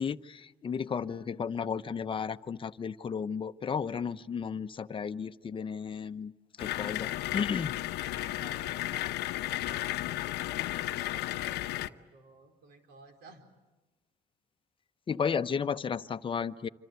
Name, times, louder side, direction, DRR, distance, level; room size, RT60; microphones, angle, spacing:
voice 1, 0.0-6.3 6.6-7.7 15.1-16.7, left 6 dB, 30° left, 11 dB, 0.9 m, -33 dB
sound 1, 6.6-11.9, left 16 dB, 85° left, 0.8 m, -34 dB
voice 2, 8.1-13.4, right 3 dB, 80° right, 5 dB, 4.6 m, -54 dB
26.5 x 26.5 x 8.2 m, 1.2 s
cardioid pair, 110°, 17 cm